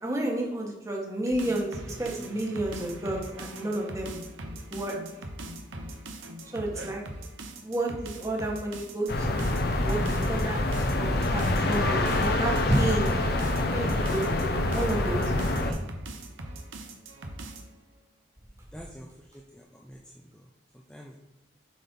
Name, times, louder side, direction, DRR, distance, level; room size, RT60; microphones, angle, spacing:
voice 1, 0.0-4.1 4.7-4.9 6.5-7.0 7.6-9.5 9.8-10.0 10.3-13.1 13.7-15.8, right 1 dB, 15° right, -1 dB, 1.4 m, -31 dB
sound 1, 1.3-17.7, right 1 dB, 80° right, 1.0 m, -41 dB
sound 2, 9.1-15.7, left 2 dB, 50° left, 0.8 m, -26 dB
voice 2, 18.7-19.1 19.3-20.3 20.9-21.2, equal, 5° left, -1 dB, 0.5 m, -46 dB
7.5 x 4.4 x 5.4 m, 1.0 s
head